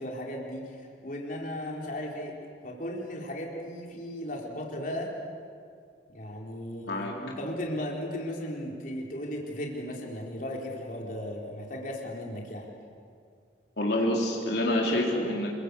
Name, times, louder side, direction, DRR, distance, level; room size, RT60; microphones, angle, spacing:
voice 1, 0.0-2.4 2.6-5.2 6.1-12.7, left 1 dB, 45° left, -1 dB, 4.0 m, -36 dB
voice 2, 13.8-15.5, left 1 dB, 65° left, -2 dB, 3.8 m, -27 dB
28.5 x 23.0 x 8.4 m, 2.2 s
head